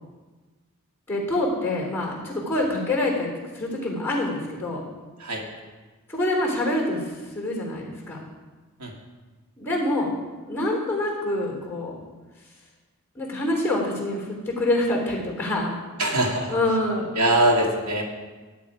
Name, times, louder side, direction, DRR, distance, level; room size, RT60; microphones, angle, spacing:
voice 1, 1.1-4.8 6.1-8.2 9.6-10.1 10.5-12.0 13.2-15.7 16.1-16.2 16.5-17.1, left 1 dB, 10° left, -1 dB, 3.6 m, -26 dB
voice 2, 16.0-16.5 17.1-18.0, right 1 dB, 80° right, 0 dB, 2.2 m, -22 dB
13.0 x 10.0 x 5.0 m, 1.3 s
head